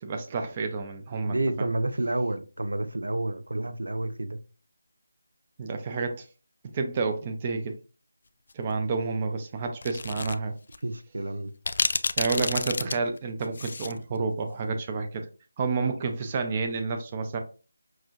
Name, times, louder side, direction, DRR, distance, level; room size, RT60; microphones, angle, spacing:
voice 1, 0.0-1.7 5.6-6.3 6.7-7.8 8.5-10.5 12.2-15.3 15.6-17.4, right 4 dB, 25° right, 0.5 m, -30 dB
voice 2, 1.3-4.4 10.8-11.5, right 2 dB, 85° right, 0.6 m, -29 dB
sound 1, 9.8-10.3 10.7-10.8 11.7-14.0, left 3 dB, 50° left, 0.3 m, -29 dB
5.9 x 2.5 x 2.5 m
figure-of-eight pair, 170°, 0 cm